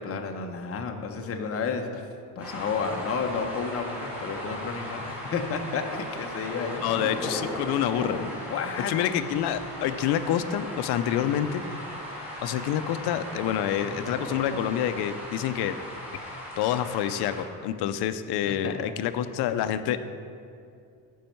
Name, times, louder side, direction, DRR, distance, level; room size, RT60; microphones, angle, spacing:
voice 1, 0.0-2.0 2.4-6.8 8.5-9.0 11.2-11.4 18.5-18.8, left 5 dB, 35° left, 4 dB, 0.9 m, -31 dB
sound 1, 2.4-17.4, equal, 5° right, 2.5 m, -37 dB
voice 2, 6.8-8.3 8.9-11.6 12.4-15.8 16.2-20.0, left 10 dB, 65° left, 11 dB, 0.6 m, -27 dB
14.0 x 5.5 x 4.5 m, 2.5 s
cardioid pair, 140°, 42 cm